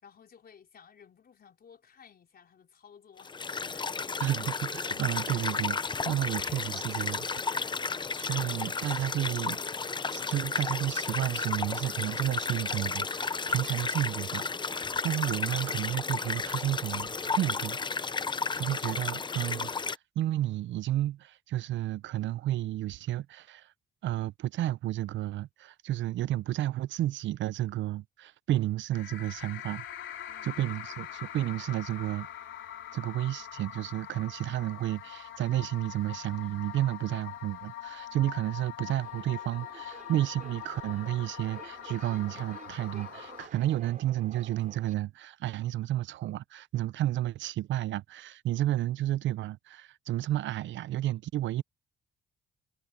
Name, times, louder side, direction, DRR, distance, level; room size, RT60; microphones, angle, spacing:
voice 1, 0.0-3.3 3.7-3.9 30.3-30.6, left 7 dB, 50° left, 4.5 m, -57 dB
sound 1, 3.2-20.0, left 4 dB, 25° left, 0.6 m, -33 dB
voice 2, 4.2-7.8 8.2-9.6 10.1-18.2 18.6-23.7 24.0-30.2 30.4-32.3 32.9-51.6, right 14 dB, 70° right, 0.5 m, -32 dB
sound 2, 28.9-43.5, left 11 dB, 75° left, 2.9 m, -43 dB
Subway metro underground, 39.0-44.9, right 6 dB, 40° right, 4.4 m, -51 dB
cardioid pair, 90°, 20 cm